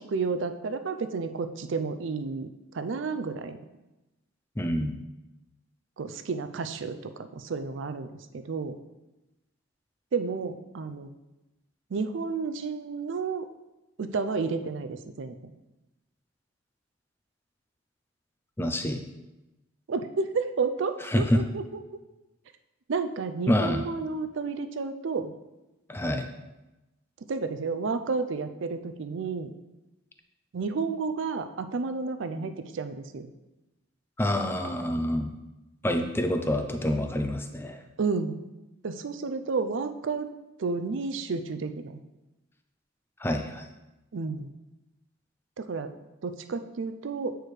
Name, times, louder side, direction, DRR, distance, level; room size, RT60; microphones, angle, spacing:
voice 1, 0.0-2.5 2.7-3.6 6.0-8.1 8.3-8.8 10.1-11.1 11.9-13.5 14.0-15.5 19.9-21.6 22.9-25.3 27.3-29.5 30.5-33.3 38.0-38.4 38.8-40.3 40.6-42.0 44.1-44.5 45.6-45.9 46.2-47.4, right 4 dB, 65° right, 9 dB, 0.4 m, -31 dB
voice 2, 4.6-5.0 18.6-19.0 21.1-21.4 23.5-23.8 25.9-26.3 34.2-35.3 35.8-37.8 43.2-43.6, left 1 dB, 10° left, 5 dB, 0.4 m, -27 dB
8.5 x 4.6 x 3.2 m, 1.0 s
head